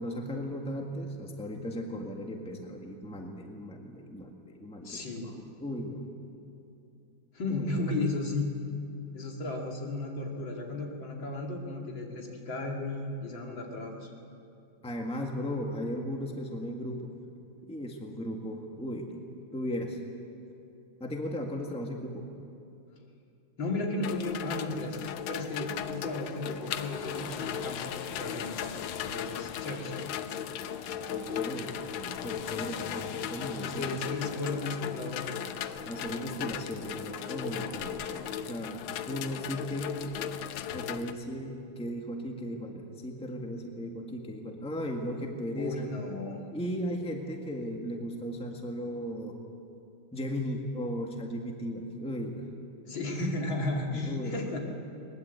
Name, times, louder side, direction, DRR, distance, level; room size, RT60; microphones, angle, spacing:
voice 1, 0.0-5.3 5.6-6.0 7.5-7.7 14.8-17.1 17.6-20.0 21.0-22.3 31.1-34.0 35.8-40.0 40.7-45.9 46.5-49.4 50.1-52.5 53.9-54.4, equal, 5° left, 2 dB, 1.6 m, -36 dB
voice 2, 4.8-5.3 7.3-8.5 9.1-14.1 23.6-30.1 33.6-35.4 45.5-46.4 52.9-54.6, left 2 dB, 65° left, 0 dB, 3.2 m, -34 dB
sound 1, 24.0-41.1, left 9 dB, 85° left, 1.6 m, -37 dB
sound 2, 25.2-38.4, right 6 dB, 85° right, 2.0 m, -53 dB
21.5 x 20.5 x 8.1 m, 2.6 s
omnidirectional pair, 2.3 m